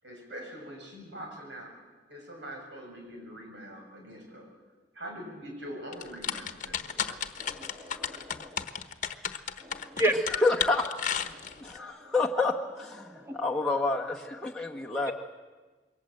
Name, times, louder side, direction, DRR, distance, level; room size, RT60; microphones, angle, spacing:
voice 1, 0.0-1.8 2.1-4.5 4.9-7.3, equal, 80° right, 1 dB, 7.1 m, -43 dB
sound 1, 5.9-11.8, left 8 dB, 45° left, 1.1 m, -33 dB
voice 2, 7.6-8.6 10.0-10.1 13.3-13.4, right 1 dB, 15° right, 3 dB, 2.1 m, -30 dB
voice 3, 10.3-10.9 11.6-15.1, left 3 dB, 5° left, -3 dB, 1.2 m, -28 dB
27.0 x 22.5 x 7.8 m, 1.3 s
head